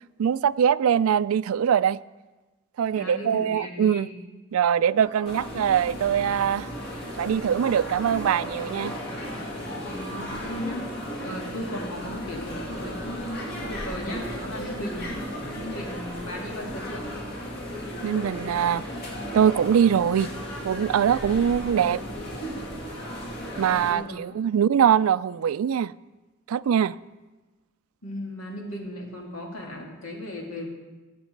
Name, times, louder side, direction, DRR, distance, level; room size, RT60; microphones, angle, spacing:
voice 1, 0.2-2.0 2.8-4.1 4.5-6.7 7.2-8.9 18.0-18.8 19.3-20.3 20.6-22.0 23.6-25.9 26.5-27.0, right 8 dB, 90° right, 0.3 m, -22 dB
voice 2, 2.9-4.2 9.8-15.1 15.6-17.1 21.3-21.4 23.9-24.2 28.0-30.7, left 1 dB, 80° left, 2.5 m, -36 dB
sound 1, 5.0-10.6, right 1 dB, 20° left, 1.6 m, -46 dB
sound 2, 5.2-23.9, equal, 50° left, 2.3 m, -35 dB
19.5 x 7.6 x 4.5 m
head